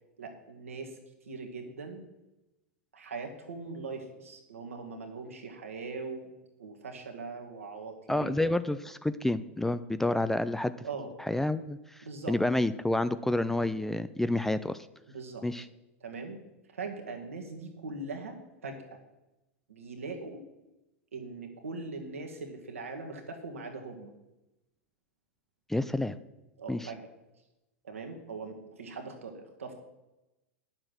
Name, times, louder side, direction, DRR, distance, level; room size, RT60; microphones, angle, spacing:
voice 1, 0.2-1.0 1.3-2.0 2.9-6.3 6.6-8.6 10.8-11.1 12.0-12.4 15.1-15.4 16.0-16.4 16.7-19.0 19.7-20.4 21.1-24.1 26.6-27.1 27.8-29.7, right 3 dB, 80° right, 3 dB, 1.9 m, -41 dB
voice 2, 8.1-10.7 11.2-14.9 15.4-15.6 25.7-26.2 26.7-26.9, left 1 dB, 5° left, 14 dB, 0.4 m, -29 dB
10.0 x 7.5 x 6.4 m, 0.98 s
figure-of-eight pair, 95°, 7 cm